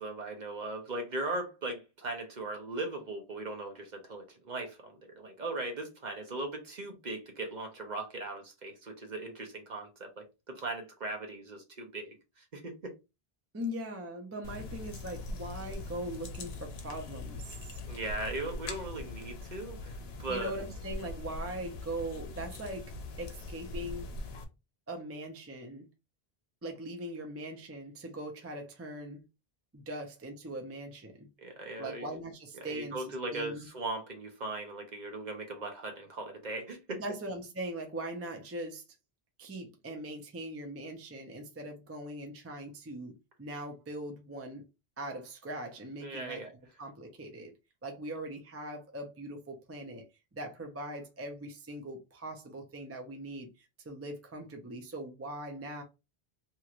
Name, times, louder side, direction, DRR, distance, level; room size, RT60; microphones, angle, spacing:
voice 1, 0.0-12.9 17.9-20.5 31.4-32.1 32.6-37.0 46.0-46.5, right 2 dB, 50° right, 0.8 m, -39 dB
voice 2, 13.5-17.8 20.3-22.9 23.2-24.1 24.9-25.9 26.6-29.2 29.7-31.3 31.8-33.7 36.9-38.8 39.4-44.6 45.0-46.4 46.8-47.5 47.8-50.0 50.3-55.8, right 1 dB, 20° right, 0.5 m, -41 dB
sound 1, 14.4-24.4, left 2 dB, 75° left, 0.9 m, -42 dB
3.0 x 2.8 x 2.4 m
omnidirectional pair, 1.1 m